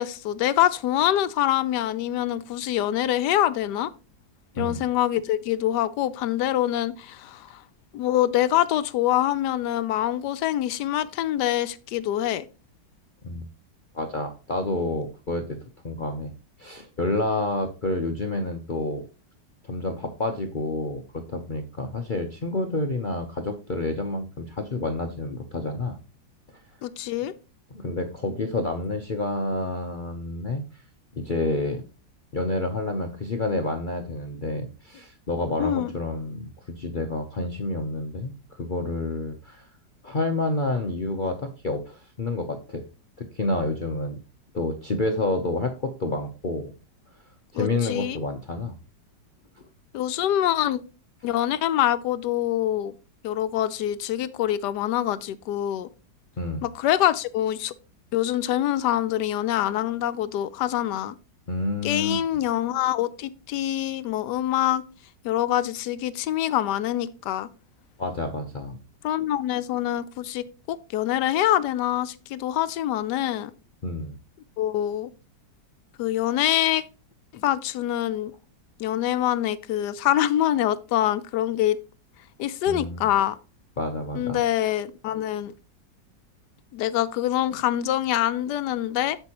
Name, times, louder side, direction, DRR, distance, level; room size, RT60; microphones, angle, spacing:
voice 1, 0.0-3.9 4.6-7.6 7.9-12.5 26.8-27.3 35.6-35.9 47.6-48.2 49.9-50.8 51.2-52.9 53.2-55.9 56.6-57.7 58.1-61.2 61.8-64.8 65.2-67.5 69.0-73.5 74.6-75.1 76.0-76.8 77.3-78.3 78.8-81.8 82.4-83.4 84.1-85.5 86.7-89.2, left 12 dB, 75° left, 1.1 m, -25 dB
voice 2, 13.9-15.6 15.8-16.3 16.6-19.0 19.6-26.0 27.7-30.6 31.1-31.8 32.3-36.5 36.8-39.7 40.0-42.8 43.2-44.2 44.5-46.7 47.5-48.8 56.4-56.6 61.5-62.2 68.0-68.8 73.8-74.2 82.7-83.1 83.8-84.4, left 2 dB, 55° left, 0.5 m, -29 dB
8.0 x 6.9 x 2.9 m
omnidirectional pair, 2.0 m